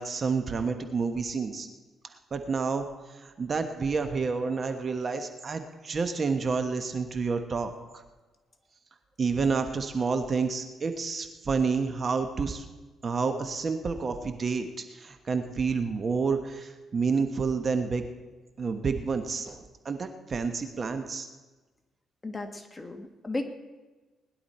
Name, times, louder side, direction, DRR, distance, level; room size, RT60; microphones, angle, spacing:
voice 1, 0.0-1.7 2.3-2.9 3.2-7.7 9.2-12.6 13.0-18.0 18.6-21.3, right 5 dB, 40° right, 7 dB, 1.2 m, -29 dB
voice 2, 22.2-23.5, left 2 dB, 20° left, 5 dB, 1.5 m, -35 dB
20.0 x 11.0 x 4.3 m, 1.2 s
cardioid pair, 90°, 0 cm